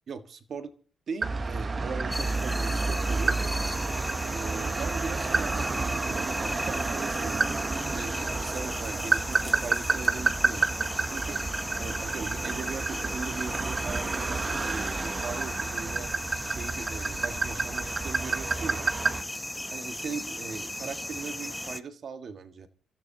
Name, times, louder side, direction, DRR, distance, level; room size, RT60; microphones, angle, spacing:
voice 1, 0.1-0.7 1.1-3.4 4.2-10.7 11.0-11.4 11.8-16.1 16.4-18.9 19.7-22.7, right 5 dB, 55° right, 7 dB, 1.7 m, -39 dB
sound 1, 1.2-19.2, right 4 dB, 30° right, 0.9 m, -30 dB
sound 2, 2.1-21.8, left 1 dB, 5° left, 0.9 m, -36 dB
28.5 x 13.5 x 2.9 m, 0.39 s
cardioid pair, 90°, 0 cm